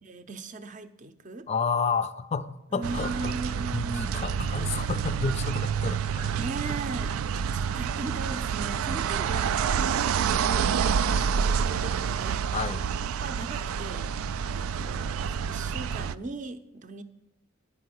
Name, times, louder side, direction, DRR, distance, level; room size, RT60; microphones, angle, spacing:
voice 1, 0.0-1.5 2.7-4.3 6.3-10.0 10.6-12.5 13.2-17.0, right 3 dB, 35° right, 10 dB, 0.6 m, -39 dB
voice 2, 1.5-3.3 3.7-6.4 12.5-12.9, left 5 dB, 30° left, 14 dB, 0.4 m, -30 dB
sound 1, 2.8-16.1, right 7 dB, 85° right, 0.3 m, -28 dB
10.0 x 5.5 x 7.7 m, 0.95 s
head